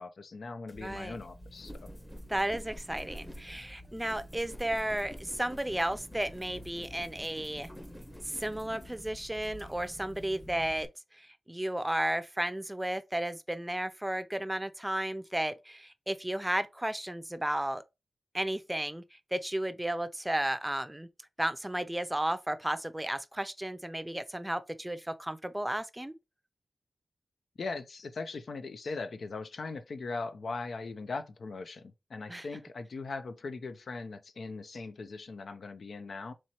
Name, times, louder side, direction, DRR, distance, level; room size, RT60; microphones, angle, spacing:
voice 1, 0.0-1.9 27.6-36.3, left 3 dB, 75° left, 0.5 m, -40 dB
sound 1, 0.7-10.9, equal, 10° left, 0.9 m, -47 dB
voice 2, 0.8-1.2 2.3-7.7 8.3-10.9 11.1-17.8 18.3-21.1 21.4-26.1 32.3-32.5, right 1 dB, 15° right, 0.5 m, -33 dB
4.4 x 3.0 x 2.9 m
cardioid pair, 50°, 0 cm